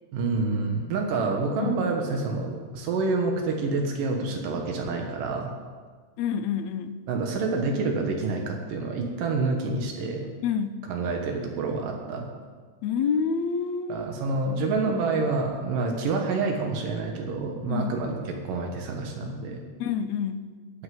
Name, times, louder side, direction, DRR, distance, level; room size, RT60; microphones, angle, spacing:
voice 1, 0.1-5.5 7.1-10.3 10.9-12.3 13.9-19.6, right 3 dB, 90° right, 2 dB, 3.1 m, -28 dB
voice 2, 6.2-7.0 10.4-10.9 12.8-14.1 17.7-17.9 19.8-20.5, left 6 dB, 70° left, 9 dB, 1.9 m, -28 dB
20.0 x 6.9 x 7.8 m, 1.5 s
omnidirectional pair, 3.7 m